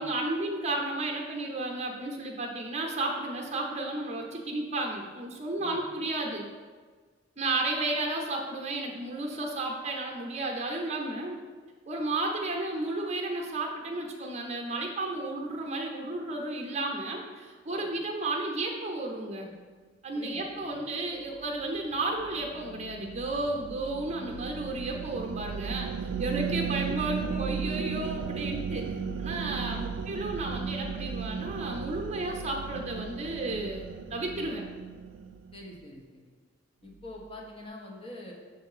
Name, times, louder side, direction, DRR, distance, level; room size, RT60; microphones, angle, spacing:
voice 1, 0.0-6.4 7.4-11.4 11.9-19.5 20.0-28.9 29.2-34.6, right 2 dB, 35° right, 1 dB, 0.8 m, -33 dB
voice 2, 20.1-20.8 29.6-30.2 35.5-36.2 36.8-38.3, left 1 dB, 30° left, -1 dB, 0.9 m, -45 dB
sound 1, 21.3-35.7, right 6 dB, 85° right, 0.4 m, -36 dB
6.8 x 2.6 x 5.6 m, 1.5 s
head